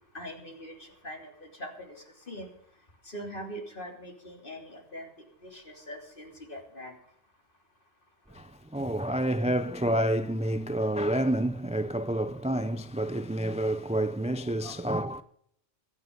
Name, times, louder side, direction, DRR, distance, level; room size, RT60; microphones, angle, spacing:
voice 1, 0.1-2.5 3.1-5.1 5.4-7.0 14.6-14.8, equal, 55° left, 3.5 m, -42 dB
voice 2, 8.3-15.2, right 1 dB, 10° right, 0.5 m, -29 dB
23.0 x 9.5 x 5.3 m
omnidirectional pair, 1.1 m